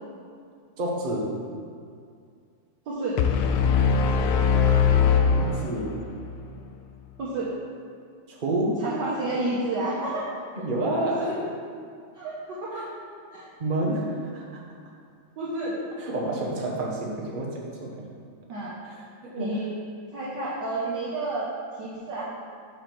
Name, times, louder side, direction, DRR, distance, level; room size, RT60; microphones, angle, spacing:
voice 1, 0.8-1.3 5.3-6.0 8.3-8.8 10.6-11.3 13.6-14.6 16.0-18.0 18.8-19.0 19.4-19.6, right 1 dB, 35° right, -2 dB, 0.8 m, -29 dB
voice 2, 2.8-3.2 7.2-7.5 8.8-10.4 11.0-11.3 12.1-12.9 13.3-13.5 15.4-15.8 18.5-18.7 19.3-19.7 20.1-21.5 21.8-22.2, right 2 dB, 55° right, -8 dB, 1.6 m, -30 dB
sound 1, 3.2-6.2, left 6 dB, 90° left, 1.5 m, -21 dB
6.5 x 4.9 x 6.0 m, 2.3 s
omnidirectional pair, 2.4 m